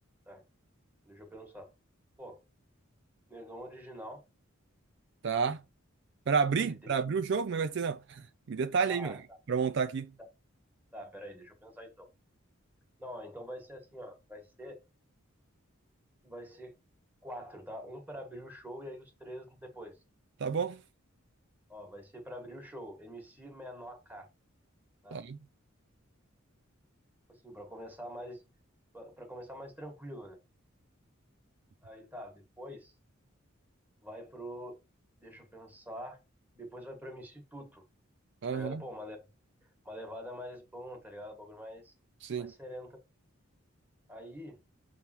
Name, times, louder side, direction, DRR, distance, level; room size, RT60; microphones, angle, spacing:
voice 1, 1.0-1.7 2.2-2.4 3.3-4.2 6.6-7.0 8.8-9.2 10.9-12.1 13.0-14.8 16.2-16.7 17.2-20.0 21.7-24.3 25.0-25.2 27.3-28.4 28.9-30.4 31.8-32.9 34.0-34.8 35.2-36.2 36.5-37.9 38.5-39.2 39.8-41.9 42.4-43.0 44.1-44.6, equal, 10° right, 1.6 m, -45 dB
voice 2, 5.2-5.6 6.3-9.2 9.5-10.1 20.4-20.8 25.1-25.4 38.4-38.8 42.2-42.5, right 5 dB, 55° right, 0.4 m, -30 dB
6.9 x 3.6 x 4.4 m
head